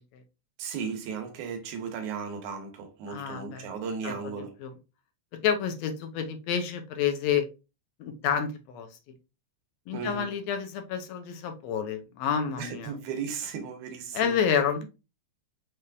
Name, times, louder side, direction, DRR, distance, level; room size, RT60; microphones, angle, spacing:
voice 1, 0.6-4.5 9.9-10.3 12.6-14.4, right 6 dB, 90° right, 2.4 m, -36 dB
voice 2, 3.1-3.7 4.0-4.3 4.6-4.7 5.4-7.5 8.0-8.9 9.9-12.9 14.1-14.8, left 7 dB, 75° left, 1.8 m, -29 dB
5.5 x 3.4 x 2.4 m
omnidirectional pair, 3.3 m